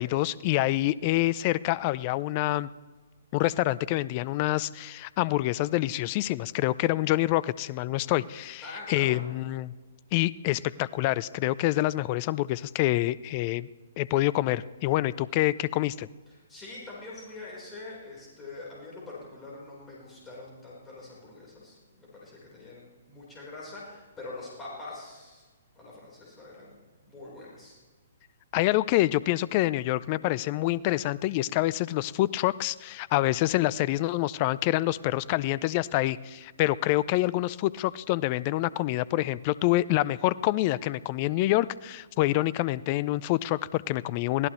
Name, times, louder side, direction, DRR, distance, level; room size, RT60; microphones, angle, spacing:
voice 1, 0.0-2.7 3.3-8.6 8.9-9.7 10.1-13.7 14.0-16.1 28.5-44.5, left 16 dB, 35° left, 20 dB, 0.4 m, -26 dB
voice 2, 8.6-9.2 16.3-25.5 25.7-26.8 27.0-27.8, left 2 dB, 15° left, -5 dB, 4.2 m, -44 dB
23.0 x 16.5 x 3.2 m, 1.3 s
figure-of-eight pair, 120°, 0 cm